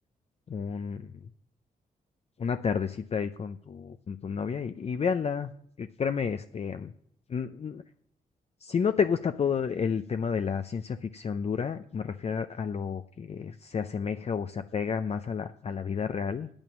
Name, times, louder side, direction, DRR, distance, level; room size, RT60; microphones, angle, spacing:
voice 1, 0.5-1.2 2.4-5.5 5.8-6.9 7.3-7.8 8.6-16.5, left 6 dB, 45° left, 9 dB, 0.5 m, -31 dB
9.1 x 8.8 x 6.1 m, 0.69 s
cardioid pair, 80°, 15 cm